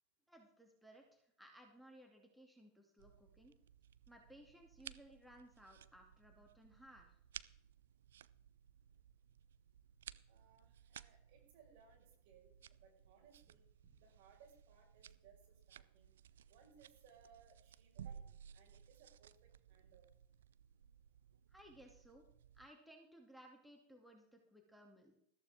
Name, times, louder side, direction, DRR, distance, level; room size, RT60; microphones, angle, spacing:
voice 1, 0.3-3.6 4.1-7.1 21.5-22.2 22.5-25.1, right 1 dB, ahead, 2 dB, 2.5 m, -61 dB
sound 1, 3.0-22.7, right 9 dB, 75° right, 0.5 m, -58 dB
voice 2, 10.2-16.1 16.5-18.3 18.5-20.1, right 6 dB, 60° right, 2 dB, 5.1 m, -66 dB
14.0 x 13.5 x 3.6 m, 0.73 s
hypercardioid pair, 95°, 0 cm